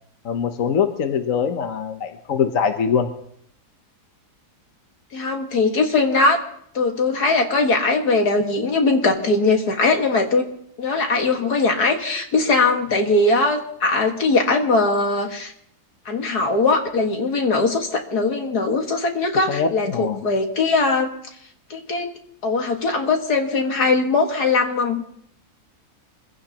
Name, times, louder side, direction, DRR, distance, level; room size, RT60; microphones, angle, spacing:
voice 1, 0.2-3.1 19.5-20.2, left 6 dB, 60° left, 6 dB, 1.3 m, -23 dB
voice 2, 5.1-6.4 6.7-10.5 10.8-15.5 16.1-21.1 21.7-22.1 22.4-25.0, left 3 dB, 75° left, 3 dB, 2.3 m, -20 dB
25.5 x 16.0 x 2.9 m, 0.68 s
omnidirectional pair, 1.7 m